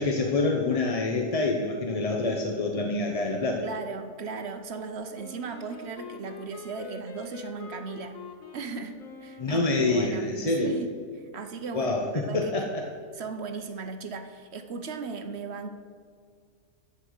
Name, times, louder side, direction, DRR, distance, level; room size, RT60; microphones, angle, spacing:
voice 1, 0.0-3.6 9.4-10.7 11.7-12.8, left 2 dB, 30° left, 1 dB, 0.8 m, -26 dB
voice 2, 3.6-8.2 8.5-10.9 11.3-12.7 13.2-15.7, right 5 dB, 55° right, 7 dB, 1.0 m, -37 dB
Wind instrument woodwind instrument, 5.1-10.2, left 5 dB, 75° left, 1.4 m, -45 dB
14.0 x 5.4 x 6.4 m, 2.1 s
omnidirectional pair, 1.4 m